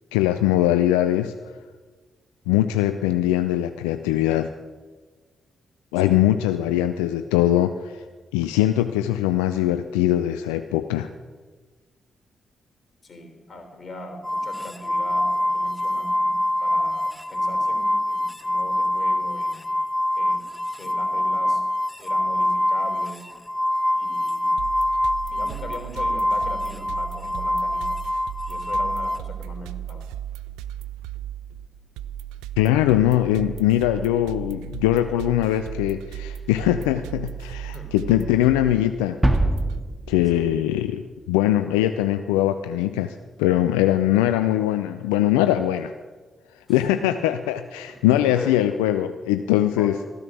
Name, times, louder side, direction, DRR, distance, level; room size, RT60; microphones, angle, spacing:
voice 1, 0.1-1.3 2.5-4.5 5.9-8.0 8.3-11.1 32.6-39.2 40.1-45.9 46.7-50.1, left 13 dB, 85° left, 9 dB, 0.4 m, -21 dB
voice 2, 13.0-16.3 16.6-19.7 20.2-20.4 20.7-21.6 22.0-23.3 23.9-24.5 25.3-28.0 28.5-30.1 37.7-38.3 40.3-40.5 46.7-46.8 48.1-48.6 49.8-49.9, left 2 dB, 45° left, 5 dB, 3.4 m, -39 dB
sound 1, 14.2-29.2, left 1 dB, 15° left, 0.8 m, -25 dB
sound 2, 24.6-39.8, right 11 dB, 80° right, 0.3 m, -36 dB
sound 3, 39.2-41.3, right 1 dB, 15° right, 1.9 m, -24 dB
14.5 x 10.5 x 6.2 m, 1.4 s
hypercardioid pair, 40°, 0 cm